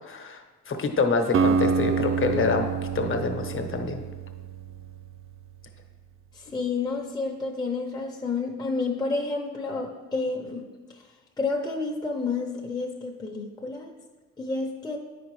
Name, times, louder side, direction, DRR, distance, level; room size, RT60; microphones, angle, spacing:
voice 1, 0.1-0.4 0.7-2.6 2.9-4.0, left 4 dB, 45° left, 5 dB, 1.0 m, -26 dB
Acoustic guitar, 1.3-5.4, right 6 dB, 45° right, 0.4 m, -27 dB
voice 2, 6.3-10.7 11.4-13.9 14.4-15.0, left 3 dB, 15° left, -1 dB, 0.7 m, -30 dB
9.3 x 5.1 x 3.2 m, 1.3 s
cardioid pair, 90°, 30 cm